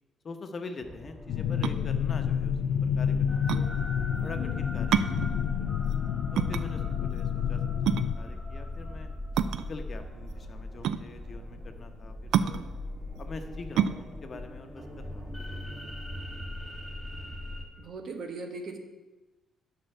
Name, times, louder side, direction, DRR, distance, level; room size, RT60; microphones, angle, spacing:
voice 1, 0.2-3.7 4.2-5.7 6.3-9.1 9.7-12.6 13.2-16.0, left 3 dB, 45° left, 6 dB, 0.9 m, -44 dB
sound 1, 0.8-17.6, left 1 dB, 10° right, 1.8 m, -41 dB
sound 2, 1.3-8.1, left 8 dB, 85° left, 0.3 m, -29 dB
sound 3, 1.4-15.8, right 9 dB, 80° right, 0.3 m, -31 dB
voice 2, 17.8-18.8, right 3 dB, 60° right, 5 dB, 1.2 m, -38 dB
7.8 x 5.4 x 6.7 m, 1.1 s
cardioid pair, 90°, 0 cm